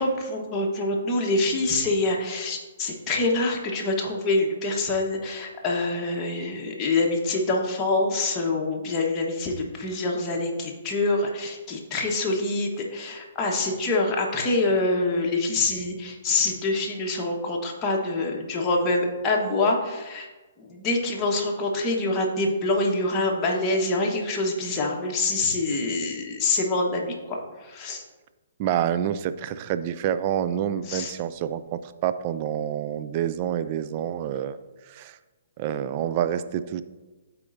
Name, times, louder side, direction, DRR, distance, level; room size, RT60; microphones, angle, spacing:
voice 1, 0.0-20.3 20.6-28.0 30.9-31.1, left 2 dB, 25° left, -1 dB, 1.2 m, -25 dB
voice 2, 28.6-34.6 34.9-35.2 35.6-36.8, right 10 dB, 40° right, 12 dB, 0.4 m, -27 dB
12.5 x 4.3 x 2.6 m, 1.2 s
hypercardioid pair, 130°, 0 cm